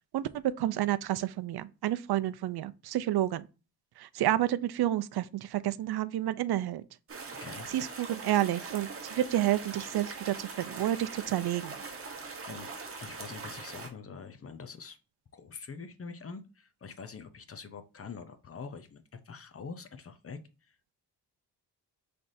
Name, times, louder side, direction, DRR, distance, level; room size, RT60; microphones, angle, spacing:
voice 1, 0.6-3.5 4.0-6.8 7.7-11.8, right 13 dB, 65° right, 0.5 m, -30 dB
sound 1, 7.1-13.9, right 4 dB, 35° right, 1.0 m, -42 dB
voice 2, 7.4-7.7 12.5-12.7 13.0-15.0 15.3-20.4 20.7-20.9, left 5 dB, 35° left, 0.6 m, -45 dB
5.6 x 3.4 x 2.6 m
wide cardioid pair, 145°, 41 cm